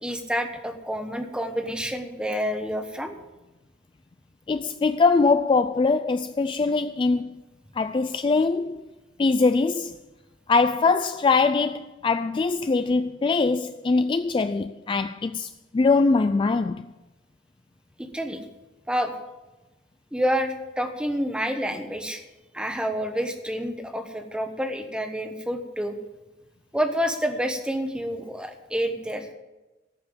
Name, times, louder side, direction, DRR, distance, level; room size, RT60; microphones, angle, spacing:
voice 1, 0.0-3.2 18.0-18.4 18.9-19.1 20.1-22.2 22.5-26.0 26.7-29.3, equal, 5° right, 1.1 m, -28 dB
voice 2, 4.5-7.4 7.8-8.8 9.2-10.0 10.5-16.9, left 4 dB, 25° left, 0.3 m, -22 dB
13.5 x 5.7 x 9.1 m
head